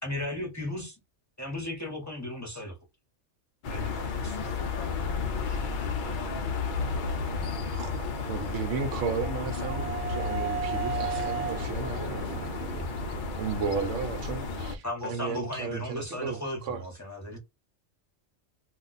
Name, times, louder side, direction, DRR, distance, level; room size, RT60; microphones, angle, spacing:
voice 1, 0.0-1.0 1.4-2.8 3.7-4.4 14.8-17.4, left 1 dB, 15° left, 0.9 m, -35 dB
sound 1, 3.6-14.8, left 4 dB, 50° left, 0.6 m, -32 dB
voice 2, 4.2-5.7, left 7 dB, 85° left, 0.3 m, -44 dB
voice 3, 7.7-12.9 13.4-16.8, right 5 dB, 75° right, 1.0 m, -34 dB
sound 2, 8.4-14.1, right 8 dB, 50° right, 0.4 m, -37 dB
2.5 x 2.3 x 3.9 m
omnidirectional pair, 1.3 m